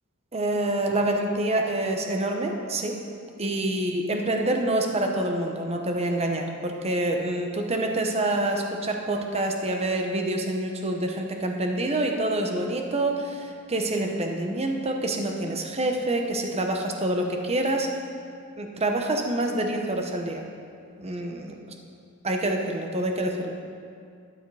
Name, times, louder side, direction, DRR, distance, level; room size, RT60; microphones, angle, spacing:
voice 1, 0.3-3.0 3.4-17.9 18.6-20.4 21.0-21.5 22.2-23.5, right 1 dB, 30° right, 2 dB, 0.9 m, -27 dB
12.5 x 10.0 x 4.8 m, 2.3 s
head